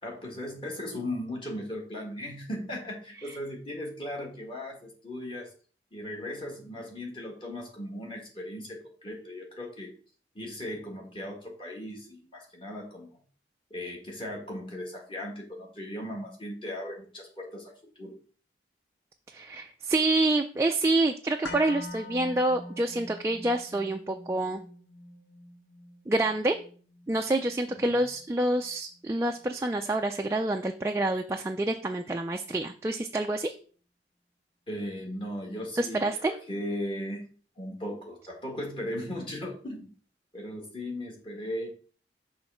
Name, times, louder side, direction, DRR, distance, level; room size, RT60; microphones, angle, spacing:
voice 1, 0.0-5.5 5.9-9.9 10.3-13.1 13.7-18.1 27.7-28.0 34.7-37.3 37.6-39.9 40.3-41.7, left 1 dB, 30° left, -1 dB, 1.7 m, -37 dB
voice 2, 19.3-24.6 26.1-26.6 27.1-33.5 35.8-36.3, right 2 dB, 15° right, 4 dB, 0.3 m, -27 dB
sound 1, 21.4-29.5 29.8-29.9, left 2 dB, 85° left, 1.0 m, -45 dB
6.2 x 3.2 x 5.7 m, 0.42 s
head